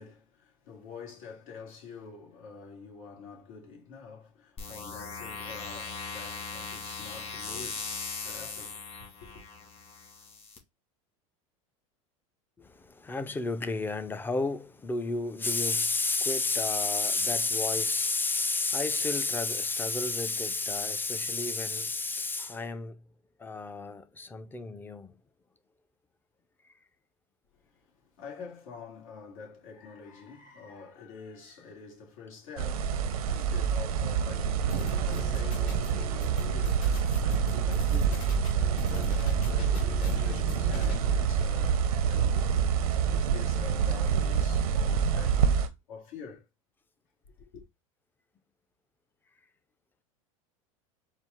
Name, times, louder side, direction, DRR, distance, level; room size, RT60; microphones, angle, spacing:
voice 1, 0.0-9.4 27.5-38.6 38.9-42.7 43.0-46.5 47.4-47.6, left 5 dB, 75° left, 2.1 m, -47 dB
sound 1, 4.6-10.6, left 4 dB, 30° left, 1.7 m, -39 dB
voice 2, 12.6-23.0 23.4-25.1, left 3 dB, 10° left, 0.5 m, -30 dB
sound 2, 32.6-45.7, right 7 dB, 85° right, 0.7 m, -27 dB
sound 3, 34.7-41.3, left 5 dB, 50° left, 1.3 m, -41 dB
4.5 x 2.4 x 3.5 m
hypercardioid pair, 100°, 18 cm